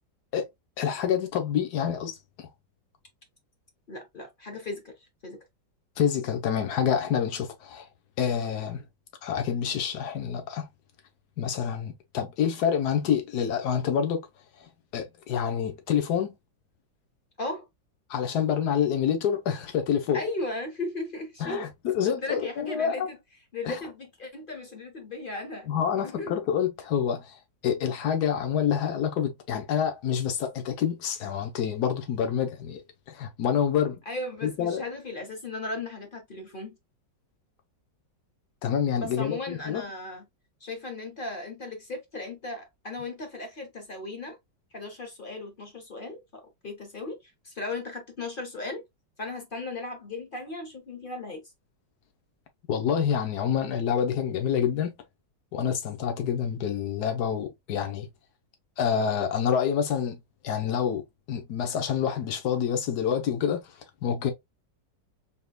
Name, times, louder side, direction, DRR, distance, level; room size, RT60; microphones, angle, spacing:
voice 1, 0.8-2.5 6.0-7.9 8.2-8.8 9.2-10.7 11.4-14.3 14.9-16.4 18.1-20.2 21.4-21.7 21.9-23.1 23.6-23.8 25.7-27.4 27.6-32.8 33.1-34.0 34.4-34.8 38.6-39.8 52.7-54.9 55.5-58.1 58.8-60.2 60.4-63.6 64.0-64.3, left 8 dB, 65° left, 1.4 m, -27 dB
voice 2, 3.9-5.4 17.4-17.7 20.1-21.7 22.0-23.2 23.5-25.7 26.0-26.3 34.1-36.8 39.0-40.3 40.6-44.4 44.7-48.8 49.2-51.4, left 2 dB, 45° left, 0.7 m, -36 dB
4.2 x 3.7 x 2.3 m
omnidirectional pair, 1.9 m